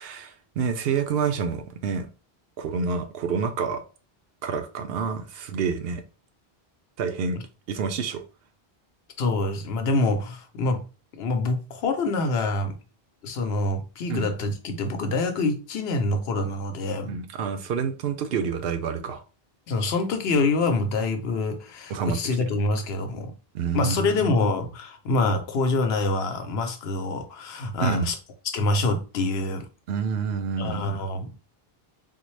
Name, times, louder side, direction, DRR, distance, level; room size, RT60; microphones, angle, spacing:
voice 1, 0.0-2.1 2.6-3.8 4.4-6.0 7.0-7.4 7.7-8.2 14.1-14.3 17.1-19.2 21.9-22.5 23.5-24.5 27.8-28.1 29.9-31.0, right 6 dB, 75° right, 0.8 m, -28 dB
voice 2, 9.2-10.9 11.1-12.8 13.2-17.1 19.7-23.3 23.7-28.1 28.4-29.7 30.6-31.3, left 2 dB, 80° left, 0.9 m, -26 dB
3.7 x 2.1 x 3.1 m
omnidirectional pair, 1.0 m